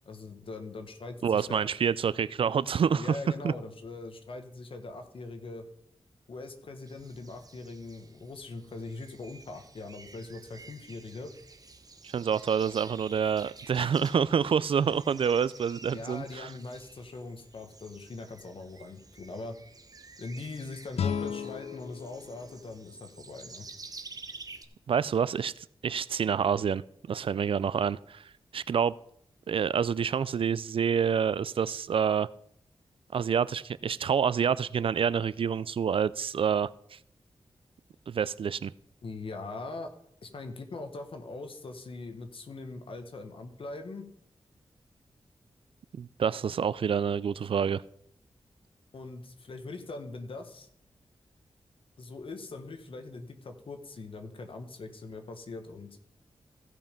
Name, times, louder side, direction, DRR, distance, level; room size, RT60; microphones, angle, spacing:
voice 1, 0.0-1.7 2.9-5.6 6.3-11.3 15.9-19.6 20.2-23.6 39.0-39.9 40.2-44.1 48.9-50.7 52.0-56.0, left 3 dB, 65° left, 6 dB, 1.4 m, -41 dB
voice 2, 1.2-3.2 3.4-3.5 12.1-16.5 24.9-26.8 27.1-28.2 28.5-28.9 29.5-32.3 33.1-37.0 38.1-38.7 46.0-47.8, right 7 dB, 65° right, 19 dB, 0.3 m, -27 dB
sound 1, 6.9-24.6, right 3 dB, 40° right, 0.9 m, -51 dB
sound 2, 20.9-24.0, left 7 dB, 85° left, 0.5 m, -36 dB
15.5 x 5.5 x 5.2 m, 0.70 s
wide cardioid pair, 95°, 10 cm